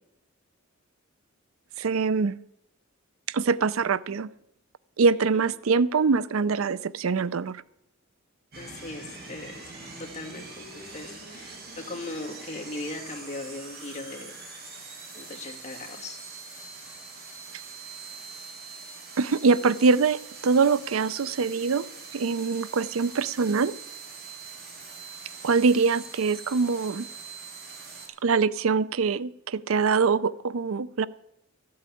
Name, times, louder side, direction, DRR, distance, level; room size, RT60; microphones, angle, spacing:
voice 1, 1.8-2.4 3.3-4.3 5.0-7.6 19.2-21.8 22.1-23.7 25.4-27.1 28.2-31.1, right 4 dB, 90° right, 19 dB, 0.5 m, -24 dB
sound 1, 8.5-28.1, right 4 dB, 50° right, 4.9 m, -43 dB
voice 2, 8.6-9.6 10.0-11.6 11.9-14.4 15.1-16.2, left 2 dB, 35° left, 1 dB, 2.5 m, -38 dB
13.5 x 8.6 x 8.4 m, 0.79 s
head